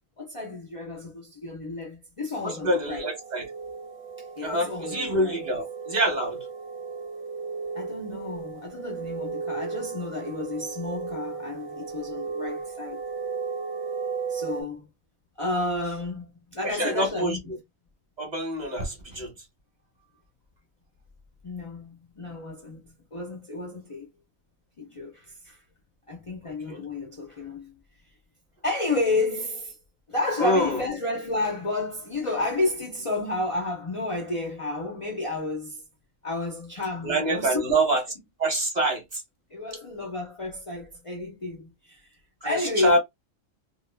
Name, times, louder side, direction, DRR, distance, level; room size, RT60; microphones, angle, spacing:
voice 1, 0.2-3.1 4.2-5.4 7.7-13.0 14.3-14.9 15.4-17.4 21.4-24.1 24.8-25.6 26.1-27.8 28.6-29.7 30.1-35.8 36.2-37.7 39.5-42.1 42.4-43.0, left 2 dB, 55° left, 0.3 m, -31 dB
voice 2, 2.4-3.5 4.4-6.4 16.6-17.4 18.2-19.3 26.7-26.8 30.4-30.8 37.0-38.0 38.4-39.2 42.4-43.0, right 1 dB, 40° right, 0.8 m, -26 dB
sound 1, 2.6-14.6, right 5 dB, 15° right, 0.5 m, -35 dB
2.3 x 2.1 x 3.2 m
omnidirectional pair, 1.4 m